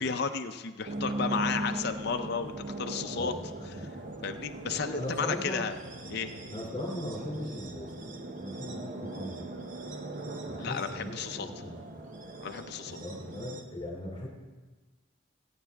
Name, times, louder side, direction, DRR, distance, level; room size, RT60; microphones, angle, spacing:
voice 1, 0.0-2.5 2.8-3.3 4.2-5.8 6.1-6.3 10.6-11.5 12.4-13.0, left 5 dB, 50° left, 6 dB, 0.6 m, -33 dB
sound 1, 0.8-13.6, right 2 dB, 40° right, 0.8 m, -39 dB
voice 2, 3.1-3.9 4.9-5.7 6.5-9.5 10.5-12.1 12.9-14.3, left 1 dB, 25° left, -1 dB, 2.7 m, -39 dB
21.0 x 8.8 x 3.5 m, 1.3 s
head